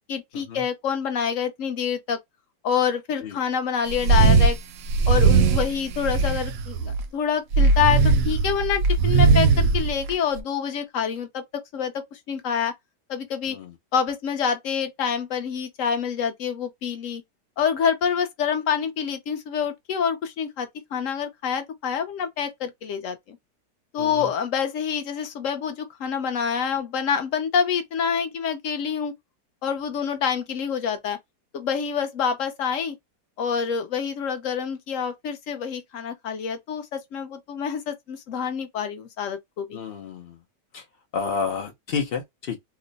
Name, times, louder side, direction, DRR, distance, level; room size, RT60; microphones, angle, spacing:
voice 1, 0.1-2.2 2.6-4.6 5.1-12.7 13.1-13.6 13.9-17.2 17.6-23.4 23.9-29.1 29.6-31.2 31.5-33.0 33.4-39.8, left 7 dB, 65° left, 0.8 m, -27 dB
sound 1, 3.9-4.5 4.9-7.0 7.5-10.4, right 4 dB, 70° right, 0.8 m, -19 dB
voice 2, 39.7-40.4 40.7-40.8 41.1-42.6, left 5 dB, 85° left, 0.5 m, -30 dB
2.9 x 2.1 x 3.9 m
omnidirectional pair, 1.9 m